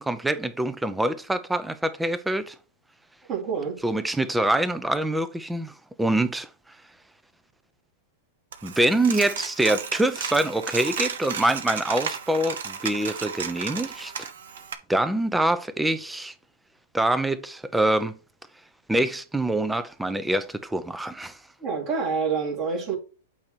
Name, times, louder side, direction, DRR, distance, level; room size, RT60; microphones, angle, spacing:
voice 1, 0.0-2.5 3.8-6.8 8.6-14.3 14.9-16.3 16.9-18.2 18.9-21.4, right 1 dB, 5° right, 0.7 m, -25 dB
voice 2, 3.3-3.8 21.6-23.0, right 5 dB, 40° right, 2.2 m, -27 dB
Coin (dropping), 8.5-14.7, right 7 dB, 75° right, 1.1 m, -33 dB
8.7 x 2.9 x 6.1 m
hypercardioid pair, 125°, 0 cm